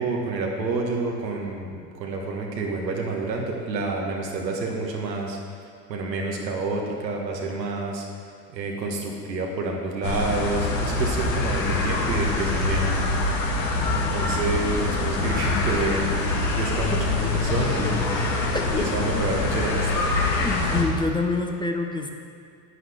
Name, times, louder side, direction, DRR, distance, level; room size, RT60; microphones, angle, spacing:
voice 1, 0.0-5.4 5.9-8.0 8.5-12.8 13.6-16.1 16.6-18.1 18.8-20.1, right 3 dB, 85° right, 0 dB, 1.7 m, -29 dB
sound 1, 10.0-20.8, left 2 dB, 75° left, 1.9 m, -24 dB
voice 2, 16.9-17.4 18.5-18.8 20.4-22.1, left 3 dB, 10° left, 3 dB, 0.8 m, -27 dB
10.5 x 9.5 x 3.5 m, 2.2 s
hypercardioid pair, 80°, 49 cm